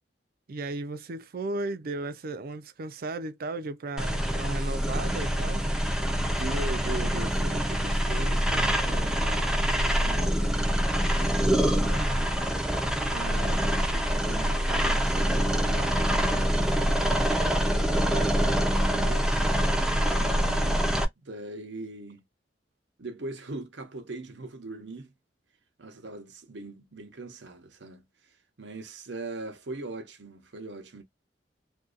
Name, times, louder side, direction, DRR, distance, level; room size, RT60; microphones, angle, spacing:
voice 1, 0.5-5.7 6.9-7.0 18.0-18.6, right 2 dB, 55° right, 0.5 m, -35 dB
sound 1, 4.0-21.0, equal, 5° right, 0.5 m, -25 dB
voice 2, 6.2-10.6 10.8-12.4 13.1-17.0 17.7-19.5 20.1-20.8 21.2-22.2 23.0-25.1 25.8-28.0 28.6-31.0, right 2 dB, 80° right, 0.8 m, -41 dB
2.6 x 2.3 x 2.4 m
head